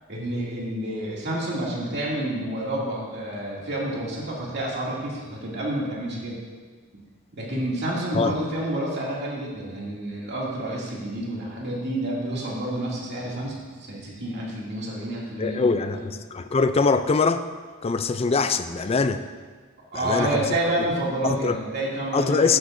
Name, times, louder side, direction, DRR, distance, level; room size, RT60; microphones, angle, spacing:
voice 1, 0.1-6.4 7.4-16.1 19.9-22.6, right 1 dB, 50° right, -4 dB, 2.5 m, -29 dB
voice 2, 15.4-17.5 17.8-19.3 19.9-20.4 21.2-21.6 22.1-22.6, left 4 dB, 25° left, 9 dB, 0.4 m, -23 dB
14.0 x 10.5 x 2.6 m, 1.5 s
head